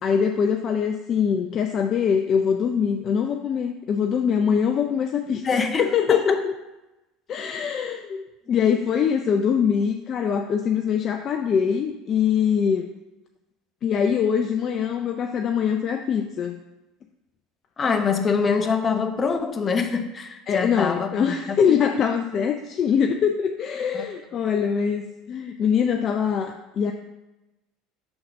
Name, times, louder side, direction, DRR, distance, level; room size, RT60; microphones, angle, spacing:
voice 1, 0.0-6.5 7.3-12.9 13.8-16.6 20.5-26.9, left 7 dB, 45° left, 0.5 m, -23 dB
voice 2, 5.4-6.4 17.8-21.8 23.9-24.0, left 5 dB, 30° left, 0.8 m, -25 dB
5.8 x 3.9 x 5.3 m
hypercardioid pair, 75°, 0 cm